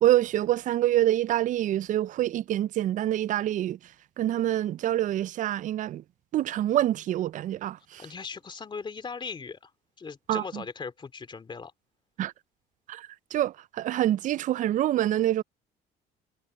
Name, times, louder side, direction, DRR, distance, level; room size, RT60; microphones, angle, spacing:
voice 1, 0.0-3.8 4.2-6.0 6.3-8.0 10.3-10.6 12.2-12.3 12.9-15.4, right 13 dB, 50° right, 0.4 m, -26 dB
voice 2, 8.0-9.7 10.0-11.7, left 5 dB, 30° left, 3.0 m, -38 dB
cardioid pair, 110°, 17 cm